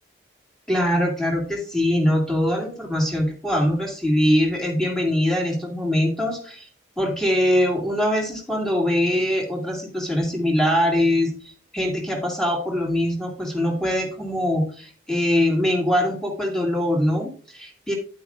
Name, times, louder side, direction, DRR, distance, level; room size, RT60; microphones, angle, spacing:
voice 1, 0.7-6.7 7.0-17.9, left 1 dB, 5° left, -2 dB, 2.2 m, -22 dB
9.9 x 8.4 x 2.5 m, 0.42 s
head